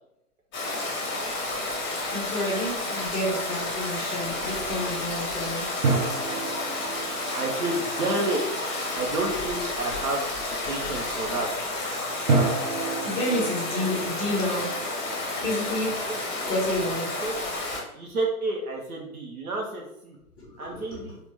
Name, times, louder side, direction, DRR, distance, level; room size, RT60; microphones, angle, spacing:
Stream, 0.5-17.8, left 2 dB, 30° left, 1.2 m, -31 dB
voice 1, 2.1-5.7 13.0-14.7 15.4-16.0 16.4-17.4 20.4-20.8, left 1 dB, 10° left, -7 dB, 1.0 m, -29 dB
sound 1, 5.8-8.7 12.3-15.6, right 3 dB, 20° right, 0.5 m, -30 dB
voice 2, 7.3-8.6 9.0-11.5 16.1-16.2 17.2-17.3 17.9-20.2 20.6-21.2, right 2 dB, 70° right, 0 dB, 0.8 m, -30 dB
3.6 x 2.4 x 3.3 m, 0.83 s
figure-of-eight pair, 115°, 45 cm